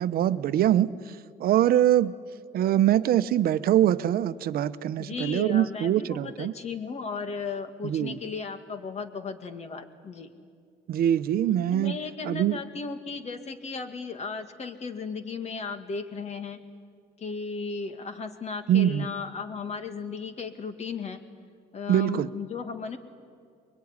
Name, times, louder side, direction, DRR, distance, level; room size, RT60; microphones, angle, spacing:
voice 1, 0.0-2.1 2.5-6.5 7.8-8.2 10.9-12.0 12.2-12.6 18.7-19.1 21.9-22.3, right 11 dB, 60° right, 13 dB, 0.9 m, -23 dB
voice 2, 5.0-10.3 11.7-16.6 17.2-21.2 21.7-23.0, left 5 dB, 40° left, 9 dB, 2.1 m, -35 dB
24.0 x 22.0 x 9.7 m, 2.3 s
cardioid pair, 110°, 17 cm